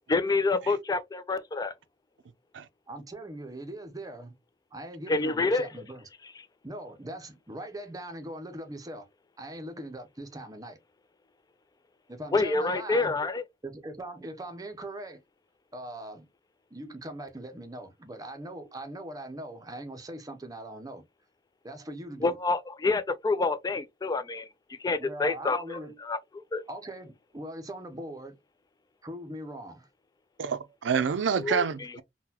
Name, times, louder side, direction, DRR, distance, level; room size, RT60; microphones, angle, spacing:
voice 1, 0.1-1.7 5.1-5.7 12.3-13.4 22.2-24.5 24.8-26.2 26.5-26.6 31.3-31.6, left 3 dB, 20° left, 0.3 m, -27 dB
voice 2, 2.9-4.3 4.7-6.1 6.6-9.1 9.4-10.8 12.1-13.1 13.6-15.2 15.7-16.3 16.7-21.0 21.6-22.4 25.0-25.9 26.7-28.4 29.0-29.9, right 1 dB, 20° right, 0.6 m, -41 dB
voice 3, 30.4-32.0, right 6 dB, 90° right, 0.4 m, -28 dB
3.8 x 2.2 x 2.8 m
head